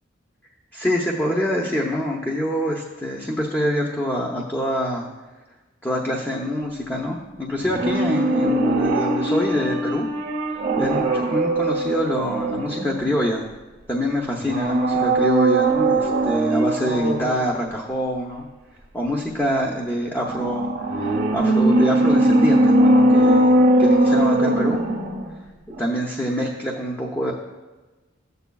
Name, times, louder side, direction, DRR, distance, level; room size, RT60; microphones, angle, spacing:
voice 1, 0.7-5.1 5.8-10.0 10.8-13.4 13.9-18.5 18.9-20.7 21.0-23.5 23.8-24.8 25.8-27.3, equal, 10° left, -2 dB, 0.7 m, -25 dB
sound 1, 7.6-13.4 14.4-17.4 20.2-25.4 25.7-25.8, right 1 dB, 50° right, 0.8 m, -20 dB
13.0 x 8.2 x 2.3 m, 1.2 s
head